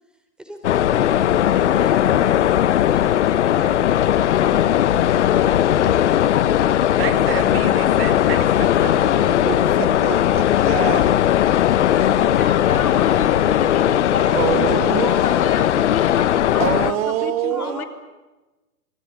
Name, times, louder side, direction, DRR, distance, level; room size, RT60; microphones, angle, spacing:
voice 1, 0.4-0.9 1.5-4.9 14.2-15.7 17.5-17.9, equal, ahead, 5 dB, 4.1 m, -37 dB
sound 1, 0.6-16.9, left 11 dB, 50° left, 1.1 m, -18 dB
voice 2, 6.9-11.2 14.3-15.1 16.6-17.8, right 11 dB, 40° right, 10 dB, 2.3 m, -26 dB
sound 2, 10.3-12.2 12.6-15.3, right 4 dB, 80° right, 7.0 m, -45 dB
voice 3, 12.0-17.9, left 6 dB, 65° left, 6 dB, 3.9 m, -30 dB
27.0 x 21.0 x 9.0 m, 1.1 s
figure-of-eight pair, 130°, 46 cm